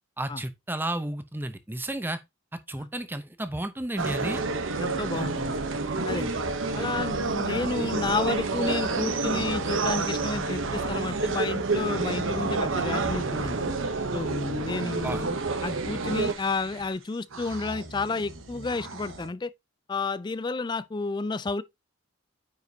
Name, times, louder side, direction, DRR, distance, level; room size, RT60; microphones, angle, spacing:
voice 1, 0.2-2.2 2.5-4.4 15.0-15.2, right 1 dB, 10° right, 0.6 m, -32 dB
sound 1, 4.0-16.3, right 3 dB, 75° right, 0.9 m, -29 dB
sound 2, 4.2-11.1 11.6-19.3, right 3 dB, 90° right, 1.3 m, -44 dB
voice 2, 4.8-5.6 6.0-6.3 6.8-13.7 14.1-19.5 19.9-21.6, left 3 dB, 20° left, 0.3 m, -31 dB
9.4 x 5.0 x 2.8 m
head